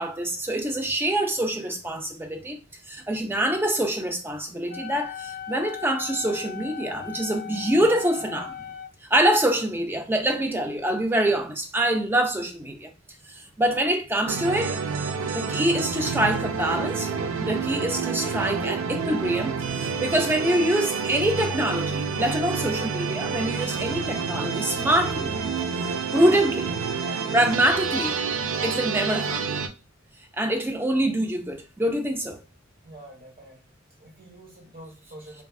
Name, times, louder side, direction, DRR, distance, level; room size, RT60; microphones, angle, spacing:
voice 1, 0.0-2.6 2.9-8.6 9.1-12.9 13.3-14.8 15.3-17.1 17.4-25.3 26.1-26.7 27.3-28.2 28.6-29.6 30.4-32.4, right 1 dB, 10° right, 0.4 m, -25 dB
Wind instrument woodwind instrument, 4.7-8.9, left 9 dB, 55° left, 0.4 m, -38 dB
sound 1, 14.3-29.7, right 5 dB, 80° right, 0.4 m, -28 dB
voice 2, 32.8-33.6 34.0-35.4, right 1 dB, 45° right, 1.3 m, -46 dB
3.4 x 2.2 x 2.3 m
head